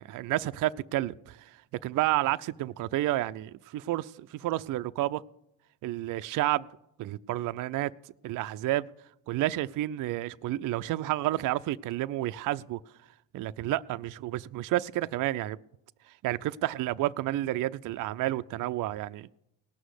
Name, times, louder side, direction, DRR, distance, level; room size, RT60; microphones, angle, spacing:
voice 1, 0.0-5.2 5.8-6.7 7.0-7.9 8.2-8.9 9.3-12.8 13.3-15.6 16.2-19.3, right 15 dB, 45° right, 0.4 m, -30 dB
18.0 x 6.3 x 8.0 m
supercardioid pair, 70°, 44 cm